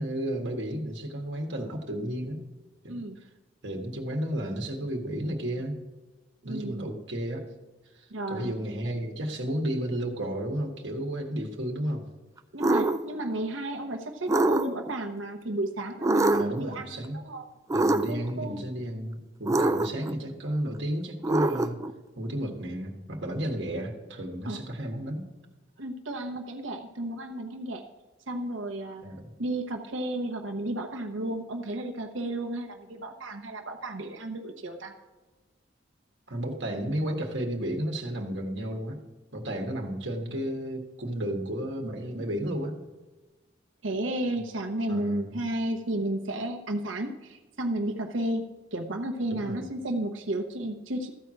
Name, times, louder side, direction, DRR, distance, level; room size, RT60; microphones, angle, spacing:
voice 1, 0.0-2.4 2.8-3.0 3.6-5.8 6.4-7.4 8.0-12.0 16.3-17.2 17.7-21.8 22.2-25.3 29.0-29.3 36.3-39.0 39.3-42.8 44.9-45.3 49.3-49.7, right 1 dB, 65° right, 2 dB, 1.6 m, -32 dB
voice 2, 2.9-3.2 6.4-6.9 8.1-8.5 12.5-17.5 18.1-18.7 24.4-24.6 25.8-27.9 28.3-29.1 29.4-34.9 43.8-51.1, right 1 dB, 90° right, 3 dB, 1.0 m, -33 dB
sound 1, 12.6-13.0 14.3-14.9 16.0-16.6 17.7-18.3 19.5-20.1 21.2-21.9, right 2 dB, 15° right, 0.4 m, -24 dB
14.0 x 4.7 x 7.6 m, 1.2 s
head